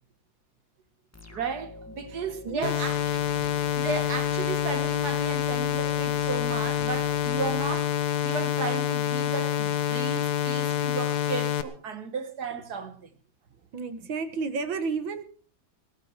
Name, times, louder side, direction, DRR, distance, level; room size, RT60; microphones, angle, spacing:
sound 1, 1.1-8.6, left 4 dB, 10° left, 1.6 m, -47 dB
voice 1, 1.3-3.0 3.8-7.9 8.2-13.1, right 5 dB, 55° right, 1.8 m, -34 dB
voice 2, 2.1-2.8 3.3-3.8 13.7-15.2, right 4 dB, 80° right, 2.2 m, -33 dB
sound 2, 2.6-11.6, left 10 dB, 60° left, 1.5 m, -27 dB
19.0 x 13.5 x 4.4 m
omnidirectional pair, 2.1 m